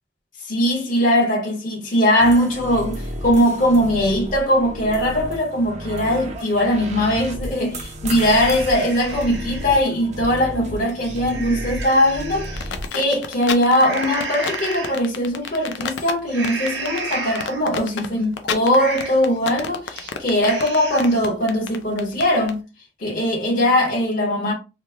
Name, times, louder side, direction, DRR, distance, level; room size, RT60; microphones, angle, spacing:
voice 1, 0.4-22.6 23.0-24.5, equal, 50° left, 1.0 m, -20 dB
sound 1, 2.2-12.9, right 1 dB, 40° right, 0.6 m, -33 dB
sound 2, 8.2-9.8 10.2-10.3 10.8-12.7 13.7-15.0 15.4-15.8 16.3-17.8 18.2-18.3 18.6-19.4 19.8-20.1 20.4-21.3, right 3 dB, 80° right, 0.8 m, -33 dB
sound 3, 12.6-22.5, left 6 dB, 90° left, 0.5 m, -30 dB
3.0 x 2.0 x 3.4 m
head